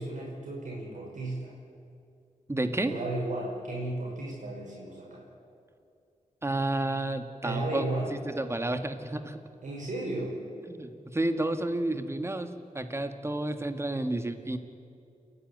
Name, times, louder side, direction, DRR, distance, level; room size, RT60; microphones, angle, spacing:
voice 1, 0.0-1.5 2.8-5.3 7.4-8.2 9.6-10.4, right 2 dB, 70° right, -3 dB, 5.4 m, -34 dB
voice 2, 2.5-2.9 6.4-7.8 8.2-9.4 10.7-14.6, right 1 dB, 20° right, 8 dB, 1.6 m, -31 dB
29.5 x 11.0 x 9.3 m, 2.5 s
cardioid pair, 75°, 13 cm